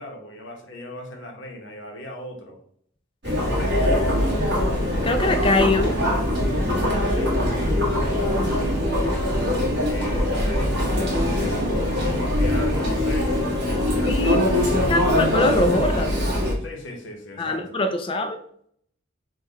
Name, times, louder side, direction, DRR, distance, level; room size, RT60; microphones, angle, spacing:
voice 1, 0.0-2.6 3.2-4.7 6.8-9.4 9.8-14.9 16.6-17.7, equal, 60° left, 2 dB, 0.9 m, -37 dB
Chatter, 3.2-16.5, left 1 dB, 55° right, 1.4 m, -22 dB
voice 2, 5.0-5.9 14.0-14.4 14.9-16.1 17.4-18.4, left 2 dB, 25° left, 7 dB, 0.3 m, -22 dB
3.8 x 2.3 x 4.0 m, 0.64 s
head